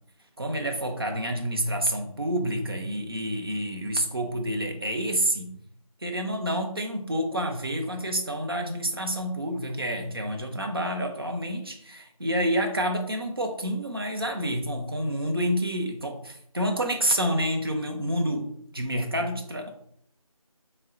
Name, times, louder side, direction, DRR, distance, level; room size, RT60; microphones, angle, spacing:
voice 1, 0.4-5.6 6.0-19.7, equal, 40° right, 3 dB, 0.5 m, -28 dB
3.9 x 2.0 x 3.7 m, 0.66 s
figure-of-eight pair, 170°, 19 cm